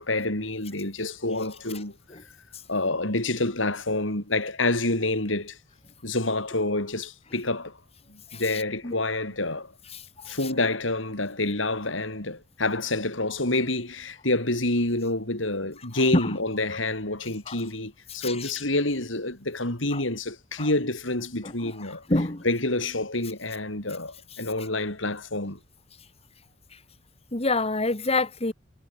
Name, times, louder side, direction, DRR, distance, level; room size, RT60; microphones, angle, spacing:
voice 1, 0.0-1.9 2.7-5.6 6.0-7.8 8.1-9.7 10.3-22.0 22.4-25.6, left 2 dB, 80° left, 5.9 m, -28 dB
voice 2, 22.1-22.4 27.3-28.5, left 2 dB, 30° left, 2.0 m, -25 dB
head